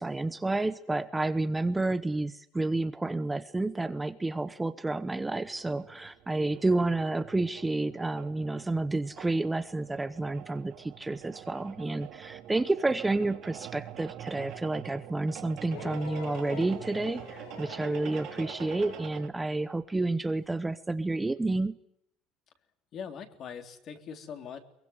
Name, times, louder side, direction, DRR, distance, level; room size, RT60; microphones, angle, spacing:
voice 1, 0.0-21.8, right 2 dB, 10° right, 11 dB, 0.9 m, -30 dB
sound 1, 5.2-19.3, right 12 dB, 55° right, 2.7 m, -46 dB
sound 2, 15.6-19.2 20.5-20.6, left 7 dB, 85° left, 5.0 m, -44 dB
voice 2, 22.9-24.6, left 7 dB, 40° left, 7 dB, 3.5 m, -41 dB
23.0 x 23.0 x 9.6 m, 0.76 s
cardioid pair, 145°, 0 cm